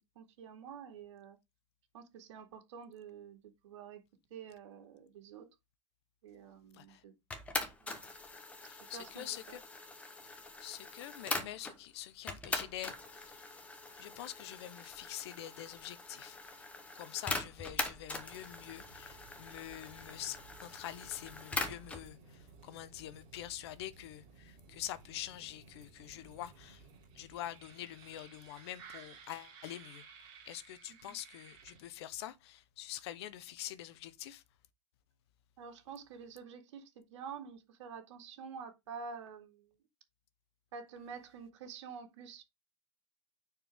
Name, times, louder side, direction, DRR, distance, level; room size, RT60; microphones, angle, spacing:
voice 1, 0.2-1.4 1.9-4.0 4.3-5.5 6.2-7.1 7.8-7.9 8.8-9.6 31.0-31.2 35.6-39.7 40.7-42.4, right 6 dB, 75° right, 2.3 m, -48 dB
sound 1, 7.3-11.8 12.3-22.1, left 3 dB, 10° left, 0.8 m, -42 dB
voice 2, 8.6-9.6 10.2-13.6 14.0-16.7 16.9-26.9 27.1-30.1 30.5-34.4, left 13 dB, 60° left, 0.9 m, -45 dB
sound 2, 18.3-32.2, right 5 dB, 35° right, 3.1 m, -57 dB
9.2 x 4.6 x 3.6 m
supercardioid pair, 175°, 15 cm